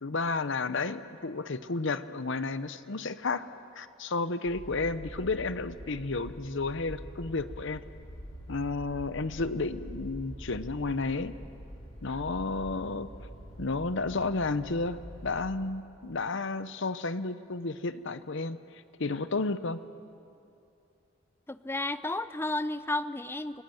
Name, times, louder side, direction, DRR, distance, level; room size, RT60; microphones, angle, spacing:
voice 1, 0.0-3.5 3.7-7.8 8.5-11.3 12.0-13.1 13.6-18.6 19.0-19.8, left 3 dB, 60° left, 13 dB, 0.9 m, -32 dB
sound 1, 4.4-15.5, equal, 85° left, 5.7 m, -45 dB
voice 2, 21.5-23.6, left 2 dB, 10° left, 14 dB, 0.5 m, -32 dB
29.5 x 19.5 x 7.9 m, 2.6 s
head